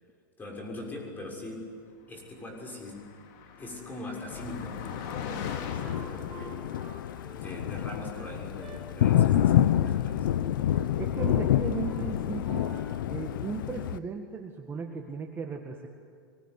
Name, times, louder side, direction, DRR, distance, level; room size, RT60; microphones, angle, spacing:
voice 1, 0.4-1.7 2.1-3.1 3.6-6.9 7.3-10.3, left 1 dB, 15° left, 0 dB, 6.6 m, -41 dB
Car passing by, 2.3-8.2, left 6 dB, 55° left, 3.2 m, -44 dB
Thunder, 4.3-14.0, left 11 dB, 75° left, 0.8 m, -28 dB
Wind instrument woodwind instrument, 5.3-8.8 9.2-9.5 9.8-10.4 10.7-11.5 11.8-12.1 12.4-13.1, right 1 dB, 5° right, 5.7 m, -49 dB
voice 2, 11.0-12.7 13.1-15.9, right 5 dB, 20° right, 3 dB, 1.8 m, -36 dB
24.0 x 21.5 x 9.6 m, 2.3 s
hypercardioid pair, 125°, 11 cm